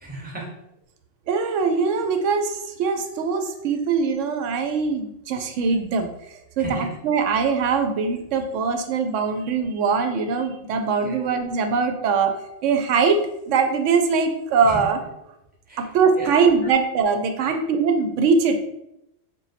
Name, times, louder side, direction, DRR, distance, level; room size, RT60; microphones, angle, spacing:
voice 1, 0.0-0.5 6.6-6.9 11.0-11.2 14.7-14.8 15.7-15.9 16.2-16.7 17.4-17.6, right 2 dB, 10° right, -4 dB, 0.8 m, -35 dB
voice 2, 1.3-6.1 6.6-12.3 12.6-13.2 13.5-15.0 15.8-18.6, right 5 dB, 90° right, 6 dB, 0.9 m, -22 dB
3.9 x 2.2 x 4.0 m, 0.85 s
omnidirectional pair, 1.2 m